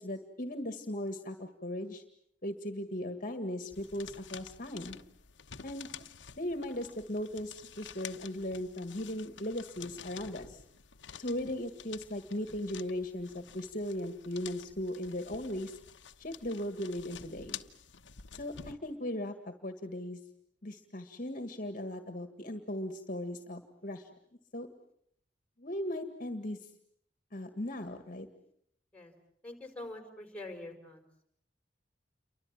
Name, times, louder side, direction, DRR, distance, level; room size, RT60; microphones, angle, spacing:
voice 1, 0.0-2.0 2.4-5.0 5.6-5.9 6.4-10.6 11.2-15.8 16.2-17.6 18.3-19.4 19.6-20.2 20.6-24.1 24.5-24.7 25.6-26.6 27.3-28.3, left 1 dB, 45° left, 8 dB, 1.9 m, -38 dB
sound 1, 3.7-18.7, left 8 dB, 80° left, 1.1 m, -50 dB
voice 2, 29.4-31.0, left 2 dB, 10° left, 5 dB, 5.0 m, -44 dB
29.0 x 24.0 x 7.5 m, 0.69 s
head